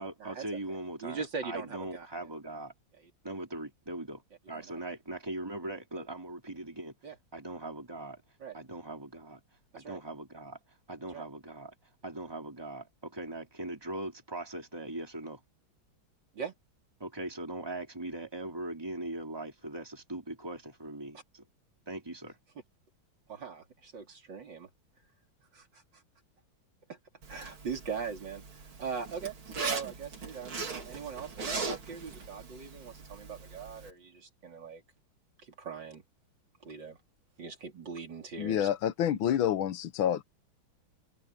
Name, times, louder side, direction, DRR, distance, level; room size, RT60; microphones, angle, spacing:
voice 1, 0.0-2.7 3.2-4.2 4.5-6.9 7.3-8.2 8.5-9.4 9.7-10.6 10.9-11.7 12.0-15.4 17.0-21.4 21.9-22.4, right 2 dB, 10° right, 3.8 m, -40 dB
voice 2, 1.0-2.1 3.0-3.1 4.5-4.8 7.0-7.2 8.4-8.6 9.7-10.0 11.0-11.2 16.3-16.5 23.3-24.7 25.5-26.0 26.9-27.0 27.3-34.8 35.4-36.0 36.6-37.0 37.4-38.7, right 6 dB, 65° right, 4.0 m, -41 dB
Zipper (clothing), 27.2-33.9, right 4 dB, 80° right, 3.8 m, -40 dB
voice 3, 38.4-40.2, left 10 dB, 90° left, 1.7 m, -28 dB
omnidirectional pair, 2.2 m